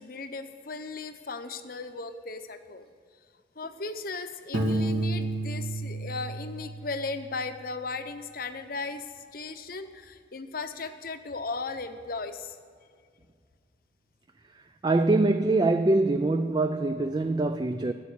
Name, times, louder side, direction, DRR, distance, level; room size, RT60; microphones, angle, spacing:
voice 1, 0.0-2.9 3.6-12.6, left 3 dB, 50° left, 0.8 m, -36 dB
Piano, 4.5-7.3, right 2 dB, 85° right, 2.1 m, -30 dB
voice 2, 14.8-17.9, right 2 dB, 20° right, 0.3 m, -24 dB
12.5 x 8.3 x 9.5 m
head